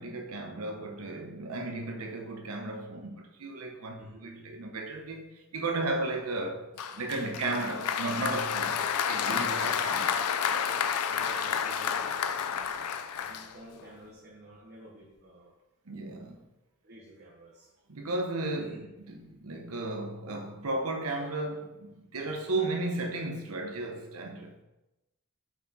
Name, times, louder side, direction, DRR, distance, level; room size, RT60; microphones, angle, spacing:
voice 1, 0.0-6.6 7.0-10.2 11.5-11.6 12.5-12.6 15.9-16.4 17.9-24.6, right 2 dB, 75° right, 1.0 m, -34 dB
Applause, 6.8-13.9, left 7 dB, 90° left, 0.5 m, -30 dB
voice 2, 11.1-15.5 16.8-17.7 18.6-18.8, right 1 dB, 45° right, 1.0 m, -51 dB
5.9 x 4.7 x 4.1 m
head